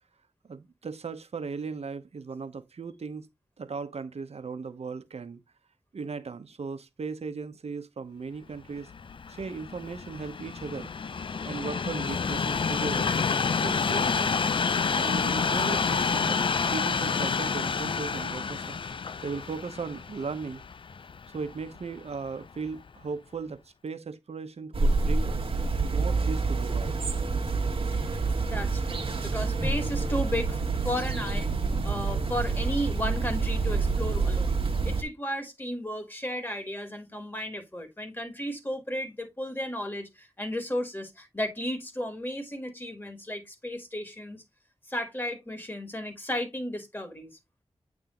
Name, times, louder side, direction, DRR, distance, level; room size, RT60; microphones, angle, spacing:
voice 1, 0.5-3.3 3.6-5.4 5.9-8.9 9.3-10.9 11.4-13.1 13.6-14.3 14.9-16.4 16.7-20.6 21.3-25.3 25.8-27.1, right 5 dB, 80° right, 1.0 m, -37 dB
Train, 8.8-22.0 22.7-22.8, left 5 dB, 55° left, 0.4 m, -29 dB
sound 1, 24.7-35.0, right 3 dB, 60° right, 1.5 m, -27 dB
voice 2, 28.5-30.6 30.8-31.5 31.8-44.4 44.9-47.4, left 1 dB, 20° left, 2.1 m, -34 dB
8.8 x 3.5 x 3.8 m
wide cardioid pair, 105°, 11 cm